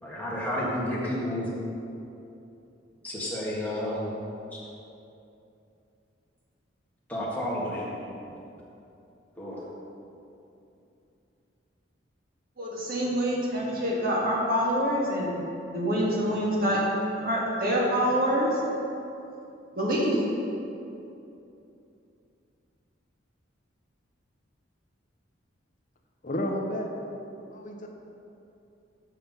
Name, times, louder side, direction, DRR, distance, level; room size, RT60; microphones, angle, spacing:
voice 1, 0.0-1.5 3.0-4.1 4.5-4.6 7.1-8.0 9.4-9.6, left 1 dB, 10° left, -7 dB, 1.6 m, -31 dB
voice 2, 12.6-15.4 15.7-16.8 17.2-18.6 19.7-20.2, equal, 50° right, -4 dB, 1.6 m, -26 dB
voice 3, 26.2-26.9 27.5-27.9, left 1 dB, 40° left, 2 dB, 0.7 m, -31 dB
7.6 x 5.8 x 5.3 m, 2.8 s
head